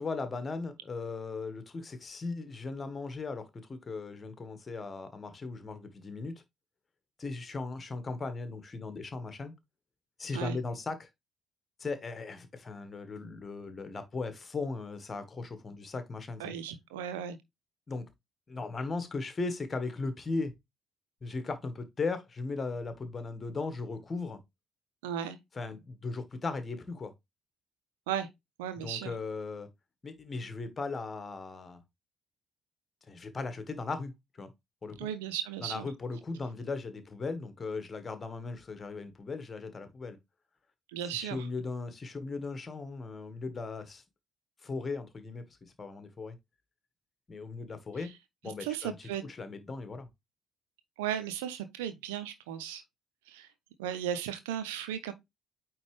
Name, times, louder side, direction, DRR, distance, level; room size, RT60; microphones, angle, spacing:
voice 1, 0.0-6.4 7.2-9.5 10.2-11.1 11.8-16.5 17.9-18.1 18.5-20.5 21.2-24.4 25.5-27.1 28.8-29.7 30.0-31.8 33.1-34.5 34.8-35.1 35.6-40.2 41.1-44.0 44.6-46.4 47.3-48.1 48.4-50.1, left 3 dB, 35° left, 1.6 m, -37 dB
voice 2, 16.4-17.4 25.0-25.4 28.1-28.3 28.6-29.1 35.0-35.9 40.9-41.5 48.6-49.2 51.0-52.8 53.3-53.5 53.8-55.1, right 9 dB, 75° right, 0.8 m, -35 dB
8.9 x 3.6 x 3.3 m
figure-of-eight pair, 50°, 0 cm